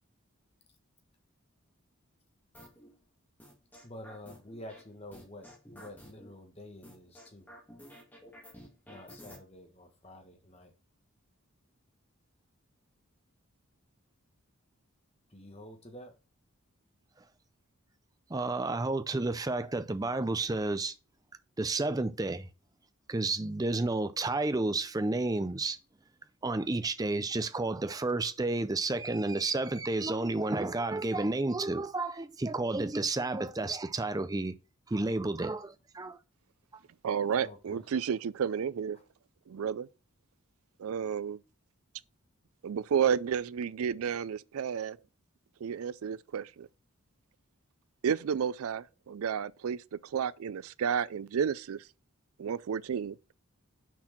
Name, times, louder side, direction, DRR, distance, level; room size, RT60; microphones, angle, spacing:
sound 1, 2.5-2.9 3.4-4.8 5.1-6.3 6.8-9.4, equal, 10° left, 1.5 m, -51 dB
voice 1, 3.8-7.5 8.9-10.7 15.3-16.1 37.4-37.8, left 1 dB, 25° left, 1.3 m, -49 dB
voice 2, 18.3-20.9 21.6-22.5 23.1-25.8 26.4-34.5 34.9-36.2, right 2 dB, 15° right, 0.4 m, -31 dB
voice 3, 37.0-39.0 39.5-39.9 40.8-41.4 42.6-45.0 45.6-46.7 48.0-51.8 52.4-53.2, right 7 dB, 75° right, 0.4 m, -31 dB
6.1 x 4.4 x 5.8 m
head